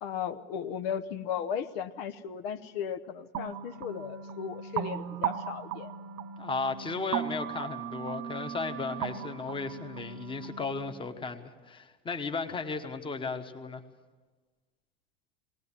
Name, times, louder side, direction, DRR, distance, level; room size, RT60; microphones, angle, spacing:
voice 1, 0.0-5.9, left 8 dB, 75° left, 9 dB, 0.9 m, -36 dB
sound 1, 3.3-10.9, right 9 dB, 55° right, 0.9 m, -37 dB
voice 2, 6.4-13.8, left 4 dB, 15° left, 7 dB, 1.2 m, -35 dB
19.0 x 18.5 x 7.3 m, 1.3 s
supercardioid pair, 125°, 30 cm